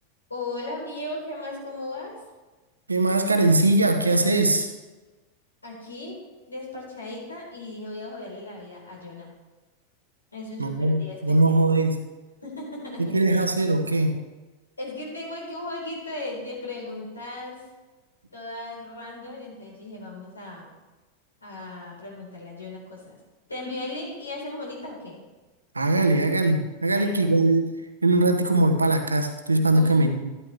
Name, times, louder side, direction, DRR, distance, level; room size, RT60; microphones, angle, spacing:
voice 1, 0.3-2.2 5.6-9.3 10.3-11.6 12.4-13.4 14.8-17.6 18.3-20.7 21.4-23.2 23.5-25.2 26.9-27.3 29.7-30.1, left 2 dB, 80° left, -3 dB, 4.1 m, -37 dB
voice 2, 2.9-4.7 10.6-12.0 13.0-14.2 25.7-27.6 28.0-30.3, right 2 dB, 80° right, 6 dB, 1.1 m, -21 dB
13.0 x 12.0 x 3.3 m, 1.2 s
figure-of-eight pair, 90°, 0 cm